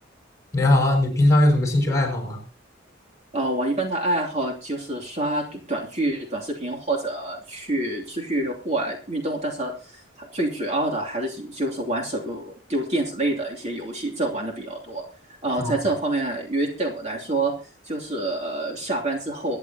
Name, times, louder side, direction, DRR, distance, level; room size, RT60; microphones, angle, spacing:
voice 1, 0.5-2.4 15.6-15.7, left 1 dB, 15° left, 2 dB, 5.8 m, -19 dB
voice 2, 3.3-15.0 15.4-17.5 17.9-19.6, right 2 dB, 35° right, -1 dB, 2.8 m, -27 dB
24.5 x 10.5 x 2.9 m, 0.35 s
head